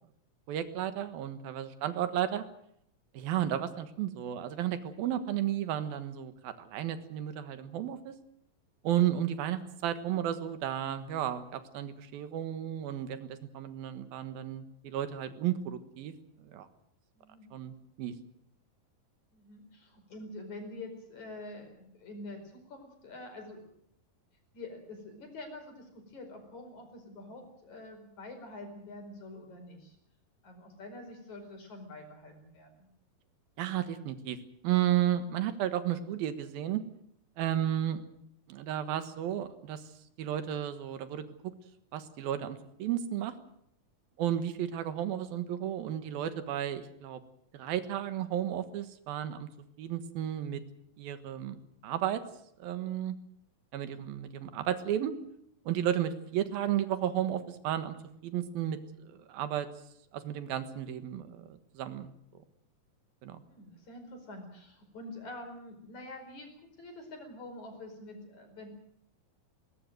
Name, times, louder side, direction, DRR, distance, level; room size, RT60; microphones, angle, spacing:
voice 1, 0.5-2.4 3.1-8.1 8.8-16.1 16.4-16.7 17.5-18.1 33.6-34.4 34.6-36.8 37.4-38.0 38.5-39.9 40.2-41.5 41.9-43.3 44.2-47.2 47.5-49.5 49.8-50.6 51.0-52.2 52.6-53.2 53.7-55.1 55.7-58.0 58.2-59.7 60.1-62.1 63.2-63.4, right 11 dB, 85° right, 10 dB, 3.3 m, -33 dB
voice 2, 17.2-17.5 19.3-23.8 24.5-30.0 30.4-32.9 44.1-44.2 63.4-68.7, left 2 dB, 55° left, 5 dB, 6.2 m, -46 dB
20.5 x 19.5 x 7.8 m, 0.72 s
omnidirectional pair, 4.1 m